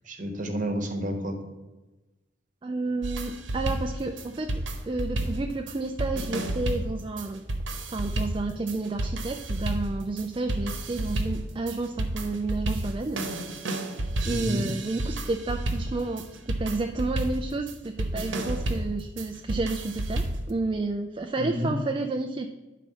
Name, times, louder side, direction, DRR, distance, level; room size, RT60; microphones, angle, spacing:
voice 1, 0.1-1.4 14.3-14.7 21.4-21.7, equal, 40° right, 5 dB, 1.1 m, -30 dB
voice 2, 2.6-7.4 7.9-14.0 14.3-22.5, right 3 dB, 25° right, 4 dB, 0.3 m, -31 dB
sound 1, 3.0-20.5, right 1 dB, 75° right, 1.0 m, -31 dB
10.0 x 4.1 x 5.5 m, 1.1 s
head